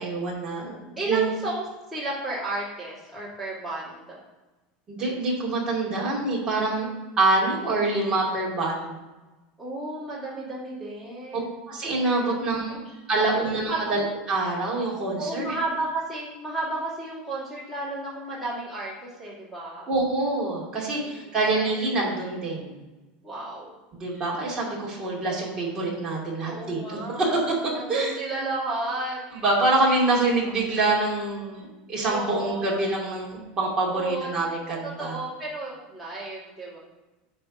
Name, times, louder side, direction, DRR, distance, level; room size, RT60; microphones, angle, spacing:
voice 1, 0.0-1.3 4.9-6.9 7.2-8.9 11.7-12.8 13.1-15.6 19.9-22.8 23.9-28.1 29.3-35.1, right 2 dB, 20° right, -5 dB, 2.5 m, -26 dB
voice 2, 1.0-1.6 1.9-4.2 9.6-11.6 12.2-12.3 13.1-13.9 15.2-19.9 21.0-21.1 21.5-21.7 23.2-23.7 24.8-24.9 26.4-27.4 27.7-29.2 30.4-30.5 32.0-32.8 33.9-34.5 34.8-36.8, right 2 dB, ahead, -9 dB, 2.6 m, -33 dB
9.6 x 3.5 x 6.9 m, 1.1 s
supercardioid pair, 170°, 4 cm